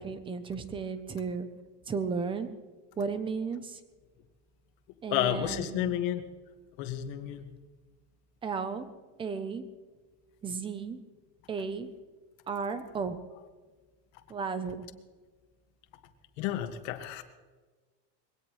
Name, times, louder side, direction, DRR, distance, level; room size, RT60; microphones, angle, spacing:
voice 1, 0.0-1.5 1.9-2.5 3.0-3.8 5.0-6.0 8.4-8.9 9.2-9.6 10.4-11.0 11.5-11.9 12.5-13.2 14.3-14.9, right 5 dB, 10° right, 11 dB, 0.6 m, -34 dB
voice 2, 5.1-6.3 6.8-7.5 16.4-17.2, left 12 dB, 55° left, 7 dB, 1.8 m, -31 dB
22.5 x 17.5 x 3.1 m, 1.4 s
supercardioid pair, 165°, 48 cm